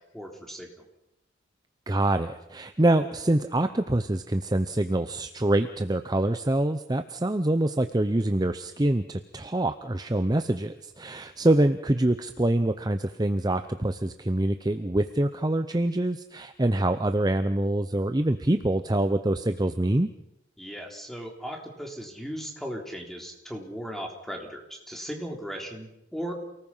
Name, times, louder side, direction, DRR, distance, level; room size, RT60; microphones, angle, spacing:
voice 1, 0.1-0.9 20.6-26.3, equal, ahead, 1 dB, 3.6 m, -37 dB
voice 2, 1.9-20.1, right 1 dB, 20° right, 9 dB, 0.7 m, -25 dB
29.0 x 19.0 x 5.6 m, 0.84 s
head